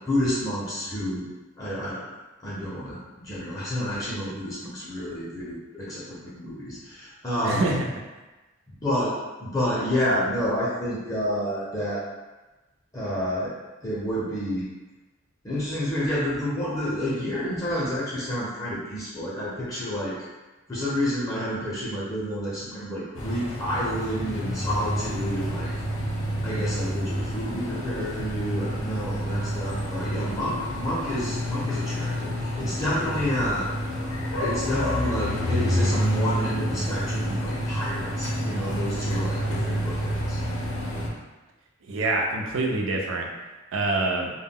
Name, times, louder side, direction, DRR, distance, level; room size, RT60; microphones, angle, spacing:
voice 1, 0.1-1.3 1.6-2.1 2.4-7.8 8.8-9.1 9.4-12.0 12.9-13.5 13.8-14.7 15.4-20.2 20.7-25.7 26.4-33.7 34.4-40.4, equal, 15° left, -8 dB, 0.5 m, -29 dB
voice 2, 7.4-7.9 41.9-43.3 43.7-44.3, right 2 dB, 70° right, 1 dB, 0.4 m, -25 dB
sound 1, 23.1-41.1, equal, 70° left, 0.5 m, -28 dB
2.1 x 2.1 x 3.5 m, 1.1 s
head